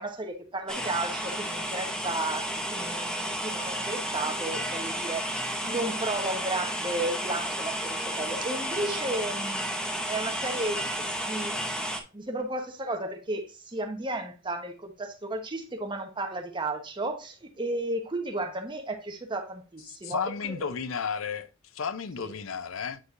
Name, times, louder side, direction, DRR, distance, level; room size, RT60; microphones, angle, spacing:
voice 1, 0.0-11.6 12.1-20.5 22.2-22.3, right 2 dB, 25° right, 1.1 m, -34 dB
sound 1, 0.7-12.0, equal, 5° left, 0.8 m, -32 dB
voice 2, 20.0-21.5 21.7-23.0, left 6 dB, 90° left, 0.6 m, -32 dB
8.8 x 4.7 x 2.5 m
head